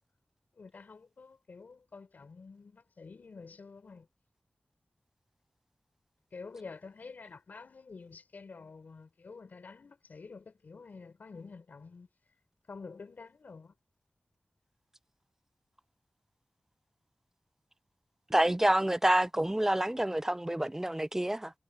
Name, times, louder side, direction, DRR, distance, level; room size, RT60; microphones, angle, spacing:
voice 1, 0.6-4.0 6.3-12.1 12.7-13.7, left 4 dB, 90° left, 5.2 m, -49 dB
voice 2, 18.3-21.5, right 1 dB, 15° right, 0.4 m, -28 dB
wide cardioid pair, 60°, 3 cm